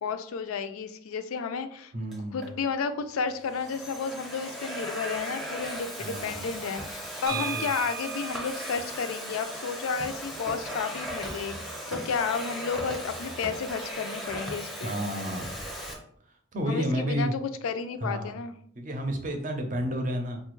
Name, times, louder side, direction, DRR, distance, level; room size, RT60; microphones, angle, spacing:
voice 1, 0.0-1.9 2.3-15.0 16.6-18.5, left 5 dB, 90° left, 9 dB, 0.4 m, -32 dB
voice 2, 1.9-2.4 6.0-6.5 7.3-7.7 14.8-15.5 16.5-17.3 18.0-18.4 18.8-20.4, equal, 40° right, 4 dB, 0.5 m, -31 dB
Domestic sounds home sounds, 2.1-2.5 3.2-15.9, equal, ahead, 0.6 m, -37 dB
sound 1, 7.3-11.0, right 8 dB, 85° right, 0.5 m, -39 dB
4.1 x 2.2 x 3.0 m, 0.63 s
head